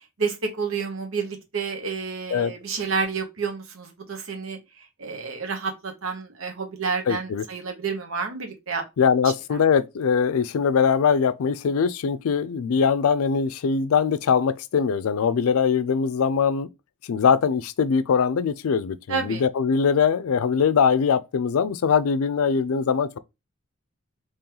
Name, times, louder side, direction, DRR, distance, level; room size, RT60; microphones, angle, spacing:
voice 1, 0.2-4.6 5.0-8.8 19.1-19.4, right 5 dB, 75° right, 1.0 m, -29 dB
voice 2, 7.1-7.4 9.0-16.7 17.0-23.2, left 6 dB, 85° left, 0.4 m, -22 dB
3.8 x 3.0 x 2.9 m
head